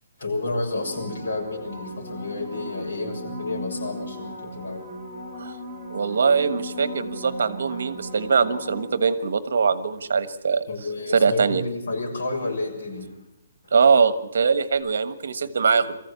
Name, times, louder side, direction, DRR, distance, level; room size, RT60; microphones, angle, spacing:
voice 1, 0.2-4.8 10.7-13.1 13.6-13.8, left 2 dB, 80° left, 1 dB, 6.8 m, -30 dB
sound 1, 0.8-9.4 14.7-14.8, equal, 5° left, 2.3 m, -37 dB
voice 2, 5.9-10.6 11.1-11.6 13.7-16.0, right 5 dB, 65° right, 13 dB, 1.3 m, -22 dB
23.0 x 15.0 x 8.2 m, 0.92 s
hypercardioid pair, 180°, 0 cm